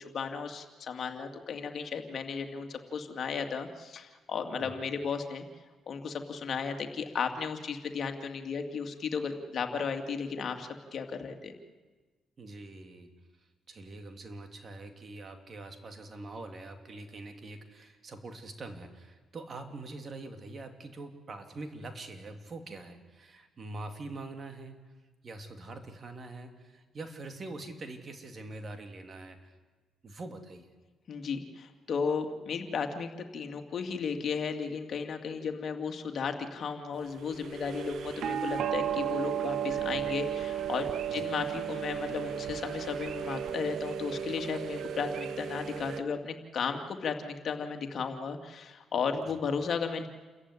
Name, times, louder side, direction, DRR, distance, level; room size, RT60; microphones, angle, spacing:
voice 1, 0.1-5.4 5.9-11.6 31.1-50.1, left 5 dB, 55° left, 5 dB, 2.5 m, -34 dB
voice 2, 12.4-13.1 13.7-24.9 25.2-29.6 30.0-30.7 41.1-41.3 49.2-49.4, right 2 dB, 40° right, 6 dB, 3.1 m, -44 dB
temple bells, 37.2-46.0, right 9 dB, 70° right, 1.1 m, -34 dB
28.5 x 14.5 x 9.9 m, 1.3 s
cardioid pair, 90°, 0 cm